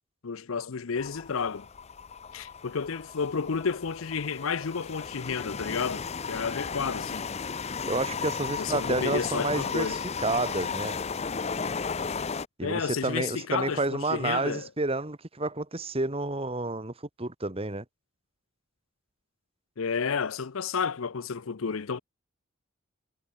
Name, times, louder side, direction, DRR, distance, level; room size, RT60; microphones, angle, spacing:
voice 1, 0.2-1.7 2.3-7.3 8.6-10.0 12.6-14.7 19.8-22.0, left 5 dB, 80° left, 0.7 m, -31 dB
sound 1, 1.0-12.5, left 5 dB, 30° left, 0.6 m, -35 dB
voice 2, 7.8-11.0 12.6-16.9 17.2-17.8, right 2 dB, 30° right, 1.6 m, -30 dB
head